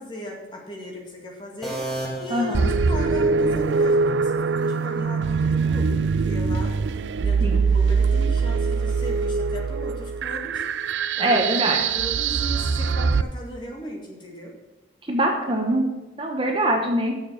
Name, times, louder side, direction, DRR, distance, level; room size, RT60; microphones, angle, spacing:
voice 1, 0.0-1.8 2.2-6.7 7.2-10.6 11.2-14.5, left 1 dB, 25° left, -1 dB, 1.9 m, -36 dB
sound 1, 1.6-3.5, right 1 dB, ahead, 1.5 m, -33 dB
voice 2, 2.3-2.7 7.4-7.6 11.2-11.8 15.1-15.8 16.2-17.1, right 1 dB, 30° right, 2 dB, 1.1 m, -23 dB
sound 2, 2.5-13.2, right 5 dB, 85° right, 0.4 m, -23 dB
7.0 x 6.9 x 7.0 m, 1.1 s
head